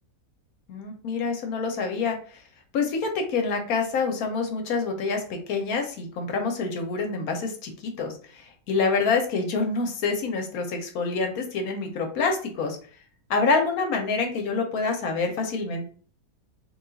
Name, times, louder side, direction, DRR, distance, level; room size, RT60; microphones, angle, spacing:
voice 1, 0.7-2.2 2.7-7.7 8.0-12.8 13.3-15.9, left 4 dB, 75° left, 4 dB, 1.2 m, -26 dB
3.4 x 2.4 x 3.8 m, 0.43 s
omnidirectional pair, 1.6 m